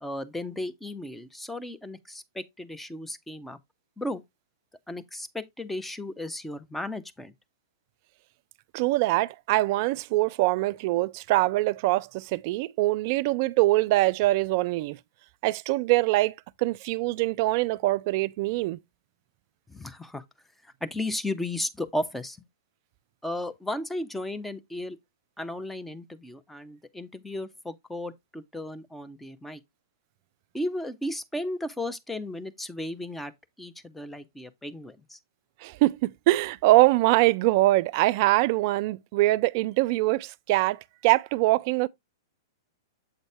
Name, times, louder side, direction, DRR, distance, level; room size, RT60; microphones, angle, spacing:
voice 1, 0.0-3.6 4.0-4.2 4.9-7.3 19.7-20.2 20.6-22.4 23.2-25.0 25.4-29.6 30.5-33.3 33.6-35.2, left 1 dB, 5° left, 0.7 m, -35 dB
voice 2, 8.7-15.0 15.4-18.8 35.6-41.9, right 18 dB, 45° right, 0.4 m, -23 dB
8.0 x 4.0 x 3.5 m
hypercardioid pair, 110°, 2 cm